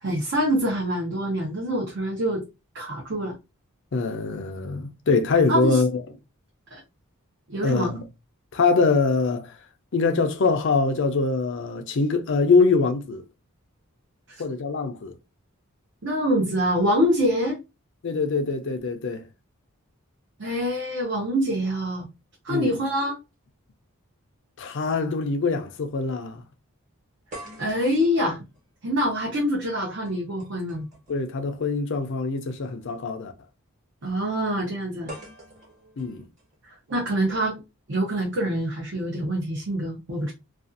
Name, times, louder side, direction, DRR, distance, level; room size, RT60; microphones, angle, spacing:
voice 1, 0.0-2.4 2.7-3.3 5.5-5.8 6.7-6.8 7.5-7.9 14.3-14.4 16.0-17.6 20.4-22.1 22.4-23.2 27.6-28.4 28.8-30.9 34.0-35.1 36.7-37.6 37.9-40.3, equal, 55° right, 0.7 m, -25 dB
voice 2, 3.9-6.0 7.6-8.0 8.5-9.6 9.9-13.2 14.4-15.1 18.0-19.2 22.5-22.8 24.6-26.4 31.1-33.3 36.0-36.3, left 4 dB, 55° left, 0.4 m, -23 dB
sound 1, 25.3-25.5 25.8-25.9 27.3-31.3 32.5-32.7 35.1-37.1, right 1 dB, 30° right, 1.1 m, -46 dB
2.5 x 2.3 x 2.5 m
head